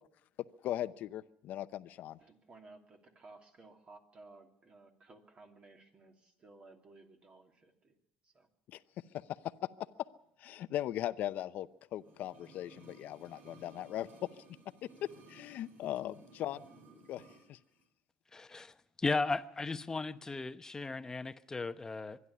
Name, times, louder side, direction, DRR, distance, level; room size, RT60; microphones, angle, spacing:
voice 1, 0.6-2.2 8.7-9.5 10.4-14.3 15.3-16.6 17.1-17.6, left 12 dB, 65° left, 0.8 m, -39 dB
voice 2, 2.2-7.9 8.2-8.5, right 3 dB, 35° right, 2.8 m, -57 dB
sound 1, 12.0-17.5 17.8-17.9, right 3 dB, 60° right, 4.6 m, -58 dB
voice 3, 18.3-18.7 19.0-22.2, left 3 dB, 20° left, 0.9 m, -36 dB
24.5 x 11.0 x 9.9 m
cardioid pair, 110°, 3 cm